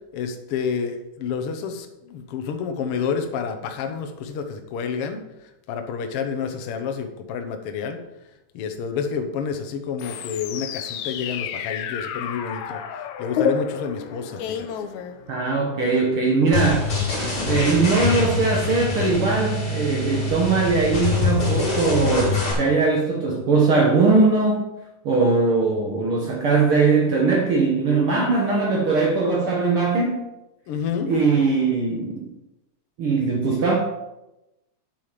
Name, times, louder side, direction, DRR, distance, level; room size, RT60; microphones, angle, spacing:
voice 1, 0.1-5.2 5.7-8.0 8.5-12.8 13.2-14.7 30.7-31.1, left 6 dB, 60° left, 6 dB, 1.6 m, -29 dB
sound 1, 10.0-15.7, left 7 dB, 80° left, 2.0 m, -30 dB
voice 2, 15.3-16.9 17.4-24.6 25.0-30.3 31.1-32.3 33.0-33.8, right 4 dB, 55° right, -1 dB, 2.0 m, -20 dB
sound 2, 16.5-22.5, left 3 dB, 45° left, 3.9 m, -24 dB
9.1 x 7.5 x 5.2 m, 0.93 s
omnidirectional pair, 3.4 m